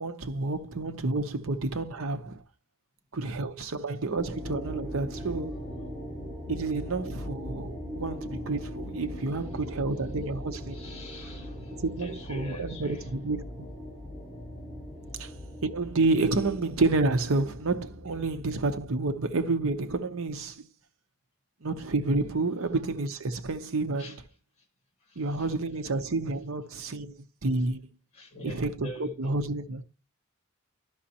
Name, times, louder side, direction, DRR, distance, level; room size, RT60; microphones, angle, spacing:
voice 1, 0.0-2.4 3.1-5.5 6.5-10.8 11.7-13.7 15.2-15.3 15.6-20.6 21.6-24.2 25.2-27.8 28.4-29.8, right 3 dB, 70° right, 0.8 m, -29 dB
sound 1, 4.1-18.9, equal, 15° right, 4.3 m, -40 dB
voice 2, 10.6-13.1 24.0-24.2 25.0-25.5 28.1-29.4 29.7-29.8, equal, 30° left, 2.4 m, -45 dB
11.5 x 6.2 x 2.9 m
head